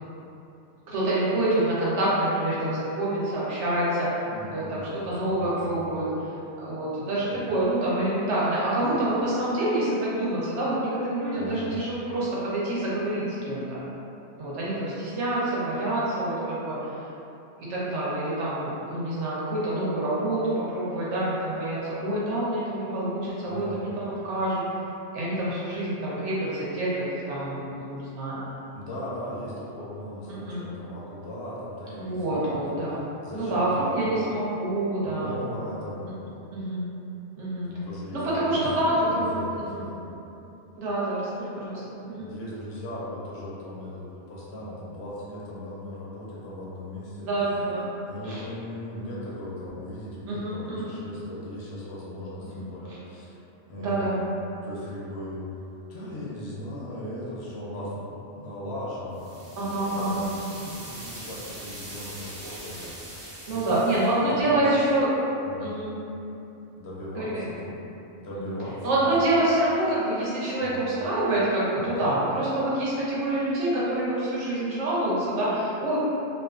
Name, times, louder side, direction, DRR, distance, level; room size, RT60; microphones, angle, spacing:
voice 1, 0.9-4.1 4.5-4.8 5.0-6.3 6.6-13.8 14.4-17.1 17.6-24.8 25.1-28.4 30.5-30.6 32.0-35.4 36.5-36.8 37.4-37.7 38.1-39.8 40.8-42.3 47.2-47.9 48.2-48.4 50.3-50.9 52.5-52.6 52.9-53.0 53.8-54.2 59.6-60.3 63.5-65.1 65.6-65.9 67.1-67.5 68.3-68.6 68.8-76.0, right 1 dB, 80° right, -8 dB, 1.0 m, -27 dB
voice 2, 4.3-5.6 7.2-7.4 11.4-11.7 23.5-23.8 28.7-32.7 33.2-34.1 35.0-36.0 37.6-38.7 39.1-40.1 42.0-47.3 48.1-53.4 53.7-54.0 54.6-55.4 55.9-58.1 58.4-59.5 59.8-60.2 60.5-63.7 64.2-64.6 65.4-65.7 66.8-69.0 70.6-70.9 71.9-72.2, left 1 dB, 70° left, -6 dB, 0.8 m, -38 dB
sound 1, 59.2-64.2, right 1 dB, 50° right, 0.7 m, -42 dB
2.4 x 2.4 x 2.3 m, 2.9 s
omnidirectional pair, 1.2 m